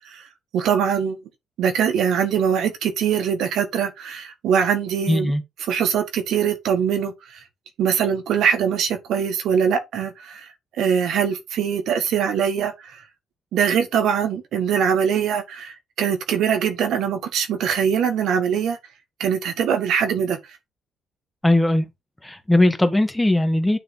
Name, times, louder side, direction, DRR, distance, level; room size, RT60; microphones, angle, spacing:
voice 1, 0.5-1.2 1.6-5.3 5.7-7.4 7.8-10.5 10.8-13.0 13.5-18.8 19.2-20.4, right 7 dB, 80° right, 1.5 m, -22 dB
voice 2, 5.1-5.4 21.4-21.9 22.2-23.8, left 1 dB, 10° left, 1.4 m, -19 dB
9.1 x 3.3 x 4.0 m
cardioid pair, 90°, 0 cm